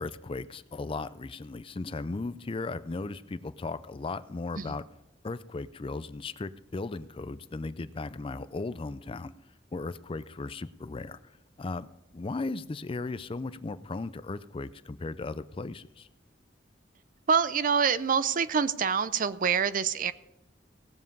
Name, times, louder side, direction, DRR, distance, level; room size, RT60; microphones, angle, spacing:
voice 1, 0.0-4.8 5.2-9.3 9.7-11.2 11.6-11.9 12.1-16.1, left 3 dB, 30° left, 14 dB, 0.4 m, -36 dB
voice 2, 17.3-20.1, right 6 dB, 50° right, 15 dB, 0.5 m, -26 dB
18.0 x 7.4 x 5.3 m, 0.93 s
head